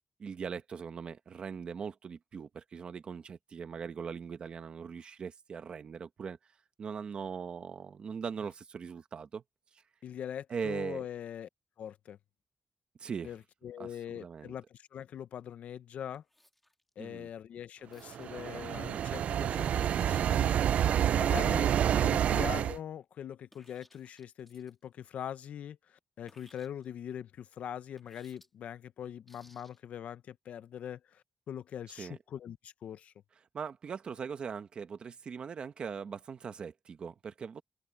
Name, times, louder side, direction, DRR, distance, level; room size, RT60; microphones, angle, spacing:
voice 1, 0.2-6.4 6.8-9.4 9.7-9.8 10.5-11.1 13.0-13.3 13.8-14.5 17.0-17.3 21.6-22.3 32.0-32.2 33.5-37.6, right 6 dB, 50° right, 1.1 m, -40 dB
voice 2, 10.0-11.5 11.8-12.2 13.2-16.2 17.0-20.5 21.2-21.7 22.0-33.1, left 9 dB, 90° left, 0.7 m, -42 dB
sound 1, 16.1-16.9 17.9-18.3 19.6-20.5 21.5-22.3 23.5-24.8 26.3-26.9 28.0-28.5 29.3-29.8, left 1 dB, 5° left, 3.2 m, -64 dB
sound 2, 18.1-22.8, right 10 dB, 75° right, 0.4 m, -28 dB
wide cardioid pair, 170°, 2 cm